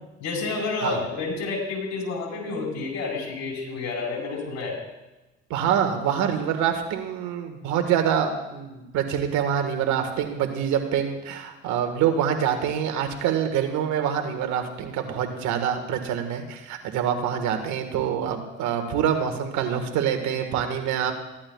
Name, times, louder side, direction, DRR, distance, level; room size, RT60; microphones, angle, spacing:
voice 1, 0.2-4.8, left 3 dB, 70° left, -2 dB, 4.3 m, -29 dB
voice 2, 5.5-21.1, right 8 dB, 75° right, 5 dB, 1.5 m, -25 dB
16.0 x 11.5 x 2.3 m, 1.1 s
supercardioid pair, 75°, 29 cm